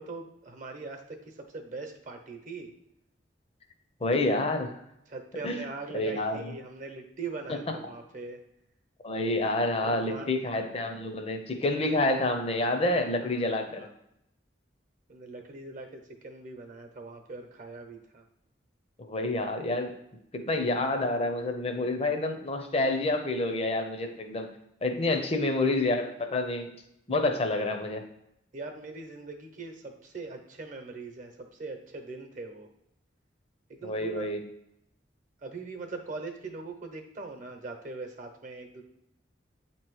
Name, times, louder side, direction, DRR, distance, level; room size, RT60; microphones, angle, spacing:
voice 1, 0.0-2.7 5.1-8.4 9.8-10.3 12.7-13.0 13.2-13.4 13.8-13.9 15.1-18.2 25.1-25.4 28.5-32.7 33.7-34.3 35.4-38.8, right 3 dB, 45° right, 4 dB, 0.9 m, -41 dB
voice 2, 4.0-4.8 5.4-5.6 5.9-6.5 7.5-7.6 9.0-13.9 19.0-19.9 20.3-24.5 24.8-26.7 27.1-28.0 33.8-34.4, left 2 dB, 35° left, 5 dB, 0.6 m, -28 dB
8.3 x 3.0 x 4.7 m, 0.80 s
head